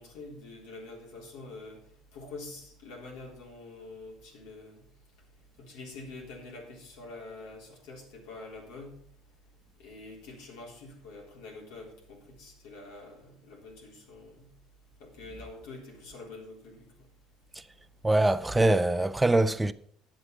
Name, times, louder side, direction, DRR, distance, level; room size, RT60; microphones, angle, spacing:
voice 1, 0.0-1.8 2.1-4.8 5.6-9.0 9.8-14.5 15.0-17.1, left 2 dB, 85° left, 3.7 m, -46 dB
voice 2, 18.0-19.7, right 2 dB, 10° right, 0.6 m, -23 dB
9.7 x 8.0 x 5.4 m
cardioid pair, 105°, 0 cm